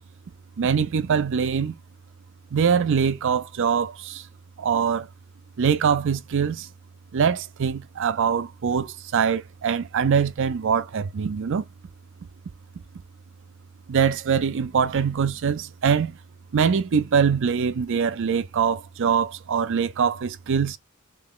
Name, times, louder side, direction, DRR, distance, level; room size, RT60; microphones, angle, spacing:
voice 1, 0.6-1.8 2.5-4.2 4.6-5.1 5.6-6.7 7.1-11.6 13.9-16.1 16.5-20.8, right 6 dB, 60° right, 0.4 m, -23 dB
3.2 x 2.9 x 3.7 m
head